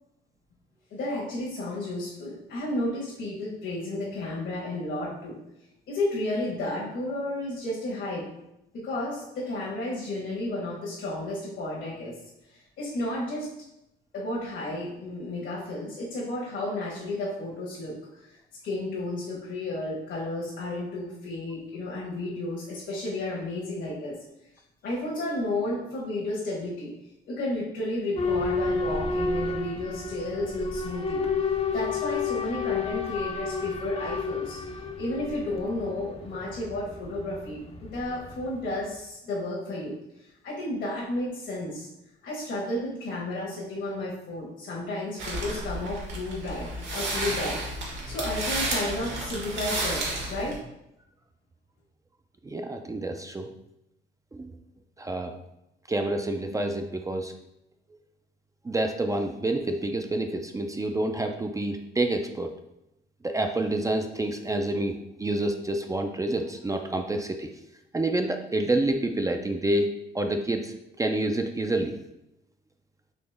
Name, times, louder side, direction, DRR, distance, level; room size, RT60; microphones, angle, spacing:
voice 1, 0.9-5.4 5.9-8.2 8.7-12.2 12.5-13.5 14.1-18.3 18.6-24.1 24.8-26.9 27.3-31.2 31.7-34.6 35.0-39.9 40.2-41.9 42.2-47.6 48.1-50.5, left 1 dB, 70° left, -5 dB, 1.3 m, -32 dB
Boat Water vehicle / Alarm, 28.2-38.8, left 4 dB, 30° left, 0.6 m, -31 dB
sound 1, 45.2-50.6, right 2 dB, 70° right, 1.4 m, -32 dB
voice 2, 52.4-53.5 54.3-54.5 55.0-55.3 55.9-57.3 58.6-62.5 63.2-67.5 67.9-69.9 70.1-71.9, right 2 dB, 15° right, 5 dB, 0.4 m, -28 dB
4.2 x 2.8 x 3.3 m, 0.86 s
cardioid pair, 90°, 20 cm